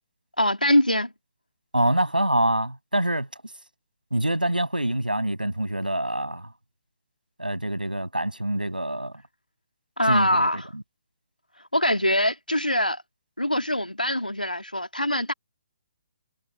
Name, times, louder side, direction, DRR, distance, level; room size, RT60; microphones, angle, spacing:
voice 1, 0.4-1.1 10.0-10.7 11.7-13.0 13.4-15.3, left 1 dB, 85° left, 2.8 m, -23 dB
voice 2, 1.7-3.5 4.1-6.5 7.4-9.1 10.1-10.8, right 1 dB, 85° right, 6.5 m, -25 dB
figure-of-eight pair, 135°, 5 cm